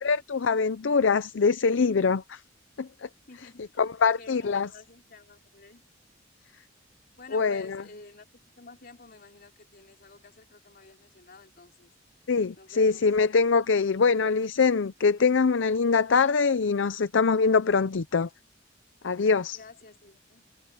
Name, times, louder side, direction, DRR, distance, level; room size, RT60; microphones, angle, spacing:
voice 1, 0.0-2.4 2.8-3.1 3.8-4.7 7.3-7.8 12.3-18.3 19.0-19.6, left 5 dB, 70° left, 0.6 m, -23 dB
voice 2, 3.3-5.8 7.2-8.3 8.6-11.9 12.6-13.1 19.5-20.4, left 3 dB, 50° left, 3.7 m, -51 dB
head